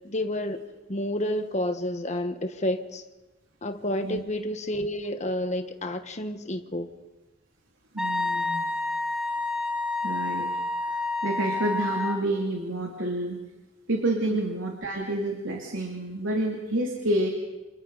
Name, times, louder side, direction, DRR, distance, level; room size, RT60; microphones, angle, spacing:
voice 1, 0.0-0.6 0.9-3.0 3.6-6.9, left 1 dB, 40° left, 6 dB, 1.4 m, -30 dB
voice 2, 7.9-8.7 10.0-10.5 10.8-10.9 11.2-13.4 13.9-17.3, right 1 dB, 90° right, 0 dB, 2.8 m, -28 dB
Wind instrument woodwind instrument, 8.0-12.2, left 3 dB, 5° right, 1.6 m, -29 dB
28.0 x 27.5 x 4.1 m, 1.1 s
head